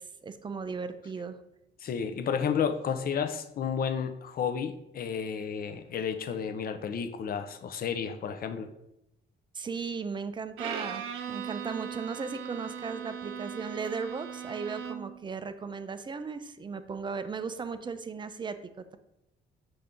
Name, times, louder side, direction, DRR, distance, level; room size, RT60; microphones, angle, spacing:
voice 1, 0.0-1.4 9.5-19.0, right 5 dB, 25° right, 10 dB, 0.3 m, -37 dB
voice 2, 1.8-8.7, left 7 dB, 50° left, 9 dB, 0.5 m, -32 dB
Bowed string instrument, 10.6-15.2, right 8 dB, 85° right, 0.5 m, -38 dB
5.5 x 2.6 x 3.6 m, 0.88 s
cardioid pair, 90°, 20 cm